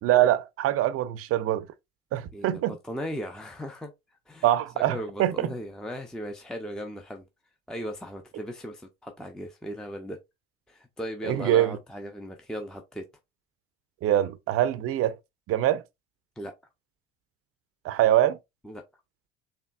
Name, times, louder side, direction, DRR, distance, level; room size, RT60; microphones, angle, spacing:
voice 1, 0.0-1.7 2.1-2.8 4.4-5.5 11.2-11.8 14.0-15.2 15.5-15.8 17.8-18.4, right 13 dB, 45° right, 0.6 m, -24 dB
voice 2, 2.3-3.9 4.3-4.5 4.8-7.3 7.7-10.2 10.7-13.0 16.4-16.5 18.6-18.8, equal, ahead, 0.5 m, -37 dB
4.4 x 2.8 x 2.3 m
hypercardioid pair, 65°, 33 cm